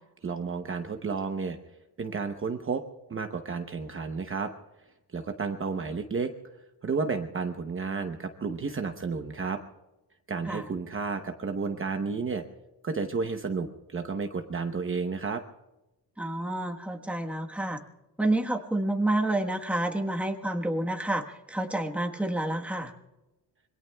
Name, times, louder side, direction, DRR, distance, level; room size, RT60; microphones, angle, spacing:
voice 1, 0.2-1.6 2.0-2.8 3.1-4.5 5.1-6.3 6.8-9.6 10.3-12.4 12.8-15.4, right 4 dB, 30° right, 5 dB, 0.9 m, -31 dB
voice 2, 16.2-17.8 18.2-22.9, right 1 dB, 5° right, 3 dB, 1.3 m, -29 dB
26.5 x 23.0 x 2.3 m, 0.99 s
wide cardioid pair, 160°, 41 cm